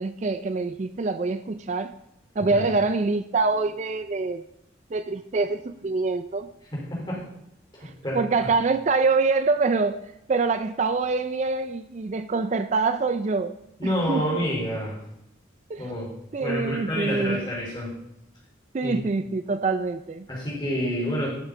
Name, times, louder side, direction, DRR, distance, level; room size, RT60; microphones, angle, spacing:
voice 1, 0.0-1.9 2.4-4.4 4.9-6.5 7.8-10.0 10.3-13.5 13.8-14.2 15.7-15.9 16.3-17.4 18.7-20.3, right 4 dB, 40° right, 11 dB, 0.4 m, -25 dB
voice 2, 6.7-7.3 7.7-8.5 13.8-15.0 15.8-16.1 16.4-17.9 18.8-19.1 20.3-21.3, equal, 25° left, -4 dB, 3.4 m, -29 dB
12.0 x 6.9 x 3.7 m, 0.82 s
head